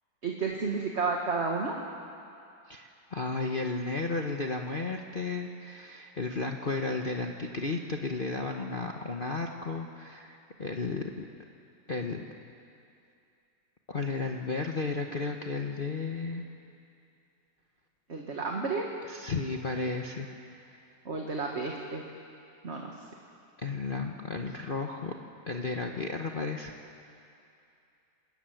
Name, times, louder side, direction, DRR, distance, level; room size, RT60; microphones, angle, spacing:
voice 1, 0.2-1.8 18.1-18.9 21.1-22.0 22.6-22.9, right 4 dB, 40° right, 0 dB, 1.8 m, -31 dB
voice 2, 2.7-11.2 11.9-12.2 13.9-16.4 19.0-20.3 20.7-20.8 23.6-25.1 25.5-26.7, left 3 dB, 35° left, 2 dB, 1.0 m, -33 dB
27.0 x 13.5 x 9.3 m, 2.6 s
omnidirectional pair, 2.0 m